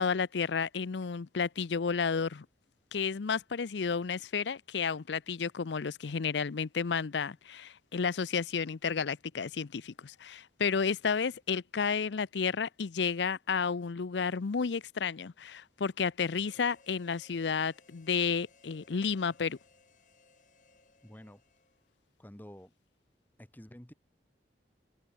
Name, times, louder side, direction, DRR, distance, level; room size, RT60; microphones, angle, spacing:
voice 1, 0.0-2.5 2.9-19.6, left 5 dB, 90° left, 0.6 m, -32 dB
Harmonica, 16.2-22.0, left 3 dB, 45° left, 7.3 m, -64 dB
voice 2, 21.0-21.4 22.2-22.7 23.4-23.9, equal, 10° left, 1.0 m, -50 dB
open air
head